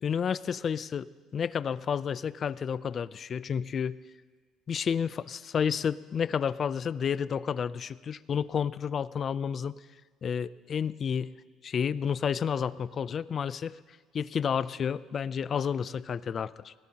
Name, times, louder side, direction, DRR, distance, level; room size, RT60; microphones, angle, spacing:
voice 1, 0.0-4.0 4.7-9.8 10.2-11.3 11.6-13.8 14.1-16.7, left 7 dB, 40° left, 18 dB, 0.4 m, -30 dB
21.5 x 17.5 x 2.9 m, 1.5 s
cardioid pair, 125°, 0 cm